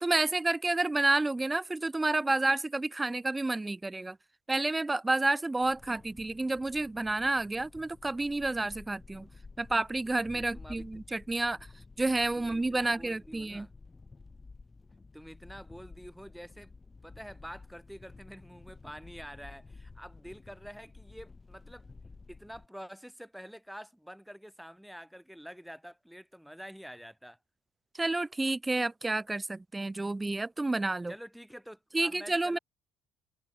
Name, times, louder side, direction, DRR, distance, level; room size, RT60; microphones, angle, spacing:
voice 1, 0.0-4.2 4.5-9.3 9.6-11.6 12.0-13.7 28.0-31.1 31.9-32.6, right 2 dB, 15° right, 0.3 m, -30 dB
sound 1, 5.6-22.7, left 3 dB, 25° left, 5.8 m, -52 dB
voice 2, 10.3-11.0 12.3-13.7 15.1-16.7 17.0-21.9 22.3-27.4 31.1-32.6, equal, ahead, 1.3 m, -47 dB
hypercardioid pair, 60°, 0 cm